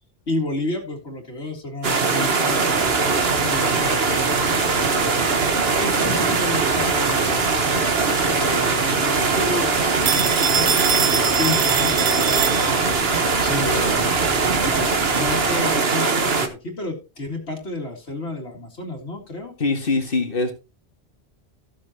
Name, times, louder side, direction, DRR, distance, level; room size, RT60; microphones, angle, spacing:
voice 1, 0.3-5.3 5.8-7.5 8.2-14.1 14.6-19.5, left 2 dB, 90° left, 2.5 m, -31 dB
sound 1, 1.8-16.5, right 4 dB, 70° right, 1.5 m, -21 dB
sound 2, 2.7-15.5, equal, 55° right, 3.6 m, -38 dB
Telephone, 10.1-13.1, right 7 dB, 85° right, 1.1 m, -23 dB
voice 2, 19.6-20.5, left 3 dB, 60° left, 2.1 m, -22 dB
14.5 x 7.6 x 2.9 m
omnidirectional pair, 1.1 m